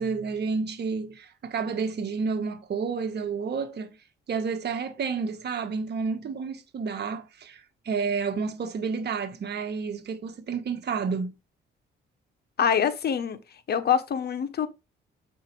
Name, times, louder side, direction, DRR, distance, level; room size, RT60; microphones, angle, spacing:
voice 1, 0.0-4.0 4.3-11.3, right 5 dB, 55° right, 1.5 m, -30 dB
voice 2, 12.6-13.4 13.7-14.7, left 8 dB, 55° left, 1.1 m, -25 dB
7.6 x 5.6 x 3.3 m
cardioid pair, 90°, 20 cm